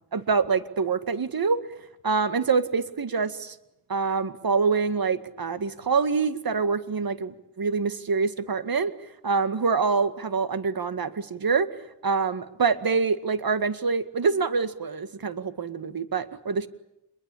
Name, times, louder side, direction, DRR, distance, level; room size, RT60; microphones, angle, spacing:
voice 1, 0.1-1.6 2.0-3.6 3.9-8.9 9.2-11.7 12.0-16.7, right 5 dB, 45° right, 12 dB, 2.1 m, -25 dB
27.5 x 22.0 x 8.6 m, 0.85 s
cardioid pair, 65°, 48 cm